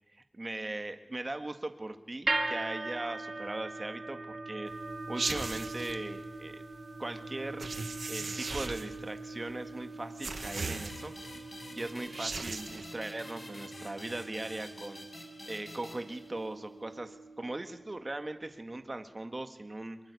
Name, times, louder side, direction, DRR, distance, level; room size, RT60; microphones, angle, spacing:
voice 1, 0.3-4.7 5.1-6.6 7.0-7.7 8.1-11.1 11.7-15.1 15.5-20.0, right 2 dB, 40° right, 8 dB, 1.9 m, -39 dB
sound 1, 2.3-18.5, right 2 dB, 60° right, 3.7 m, -41 dB
sound 2, 5.2-5.9 7.6-9.0 10.2-11.2 12.0-12.9, right 3 dB, 85° right, 1.9 m, -37 dB
sound 3, 10.4-16.7, left 1 dB, 50° left, 6.0 m, -48 dB
25.5 x 23.5 x 8.5 m, 0.99 s
wide cardioid pair, 70°, 0 cm